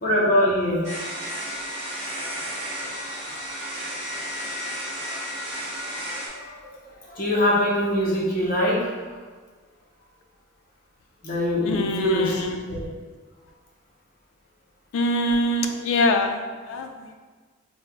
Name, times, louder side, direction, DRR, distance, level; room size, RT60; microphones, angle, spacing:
voice 1, 0.0-0.9 5.7-6.7 7.0-9.1 11.2-12.4 12.7-12.8, equal, 40° left, -5 dB, 0.8 m, -23 dB
sound 1, 0.8-6.3, equal, 30° right, 0.9 m, -32 dB
voice 2, 11.6-12.9 14.9-17.1, left 1 dB, 65° left, 5 dB, 0.3 m, -24 dB
3.3 x 2.2 x 3.5 m, 1.5 s
head